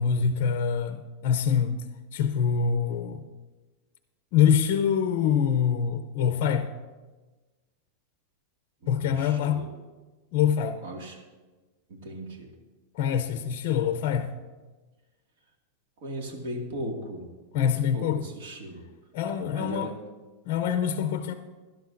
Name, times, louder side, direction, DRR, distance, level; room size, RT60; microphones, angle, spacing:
voice 1, 0.0-3.3 4.3-6.8 8.9-9.7 10.3-10.8 12.9-14.4 17.5-18.2 19.1-19.9 20.5-21.3, left 7 dB, 50° left, 0.5 m, -25 dB
voice 2, 8.8-9.7 10.8-11.2 11.9-12.5 16.0-17.3 17.5-18.9 19.5-19.9, right 1 dB, 65° right, 2.1 m, -37 dB
17.5 x 11.5 x 2.6 m
supercardioid pair, 160°, 0 cm